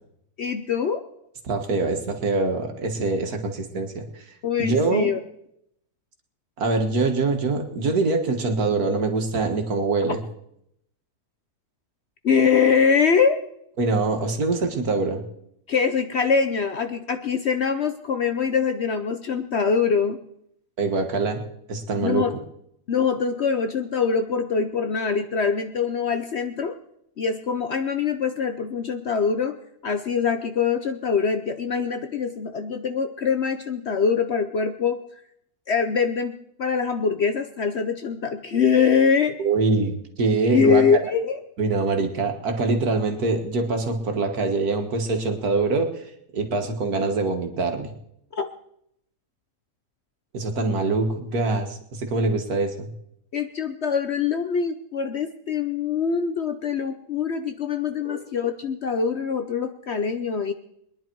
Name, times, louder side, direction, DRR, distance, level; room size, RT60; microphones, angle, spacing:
voice 1, 0.4-1.0 4.4-5.2 12.2-13.4 15.7-20.2 22.0-22.3 22.9-26.8 27.2-35.0 35.7-36.3 36.6-39.4 40.5-41.4 48.3-48.5 53.3-60.5, left 6 dB, 55° left, 8 dB, 0.8 m, -23 dB
voice 2, 1.4-4.3 4.6-5.1 6.6-10.2 13.8-15.2 20.8-21.4 21.7-22.3 39.4-40.8 41.6-45.9 46.3-47.9 50.3-52.9 58.1-58.2, right 3 dB, 70° right, 5 dB, 2.1 m, -24 dB
22.0 x 10.5 x 4.6 m, 0.76 s
omnidirectional pair, 1.7 m